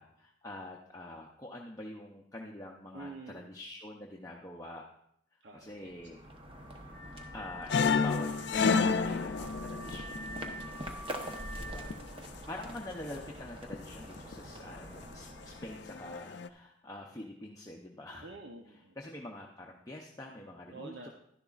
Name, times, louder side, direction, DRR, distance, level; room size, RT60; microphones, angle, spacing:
voice 1, 0.0-4.8 5.5-6.2 7.3-10.8 11.6-11.9 12.5-18.3 19.0-21.1, left 1 dB, 20° left, -1 dB, 0.6 m, -46 dB
voice 2, 2.9-3.5 5.4-5.9 11.1-12.5 18.2-19.0 20.7-21.1, right 3 dB, 70° right, 2 dB, 0.7 m, -49 dB
sound 1, 5.7-16.4, equal, 30° right, 0.9 m, -46 dB
Car / Alarm, 6.5-12.0, equal, 35° left, 1.2 m, -47 dB
sound 2, 7.7-11.1 11.4-12.0 12.7-13.1 13.7-14.3 14.7-15.0 15.4-16.5, left 5 dB, 65° left, 0.4 m, -30 dB
11.5 x 10.5 x 2.4 m, 0.72 s
head